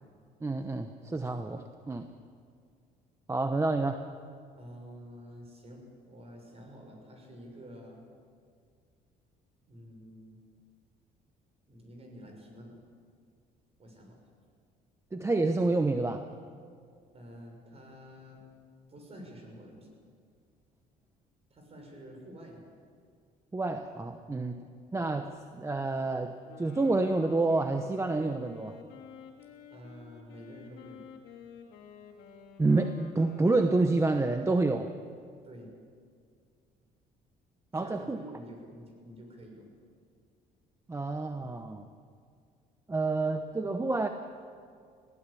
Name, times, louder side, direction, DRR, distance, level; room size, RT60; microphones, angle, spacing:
voice 1, 0.4-2.1 3.3-4.0 15.1-16.3 23.5-24.7 24.9-28.8 32.6-34.9 37.7-38.2 40.9-41.9 42.9-44.1, right 3 dB, 15° right, 7 dB, 1.0 m, -28 dB
voice 2, 4.6-8.0 9.7-10.4 11.7-12.8 13.8-14.2 17.1-18.4 18.9-19.9 21.5-22.6 29.7-31.0 35.4-35.7 37.7-39.7, equal, 35° right, 2 dB, 6.5 m, -49 dB
Wind instrument woodwind instrument, 26.4-34.3, left 7 dB, 85° left, 2.7 m, -51 dB
22.0 x 16.5 x 8.5 m, 2.2 s
cardioid pair, 110°, 17 cm